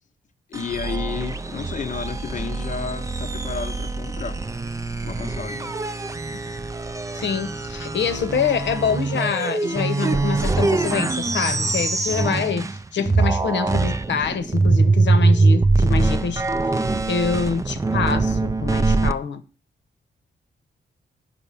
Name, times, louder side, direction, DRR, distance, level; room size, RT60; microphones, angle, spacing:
voice 1, 0.5-4.4 5.0-5.7 13.0-13.2, left 6 dB, 40° left, 0.7 m, -32 dB
sound 1, 0.5-12.8 13.1-19.1, right 3 dB, 15° right, 0.4 m, -23 dB
voice 2, 7.1-16.4 16.8-19.4, left 6 dB, 75° left, 1.0 m, -25 dB
10.0 x 5.7 x 6.8 m
wide cardioid pair, 125°, 19 cm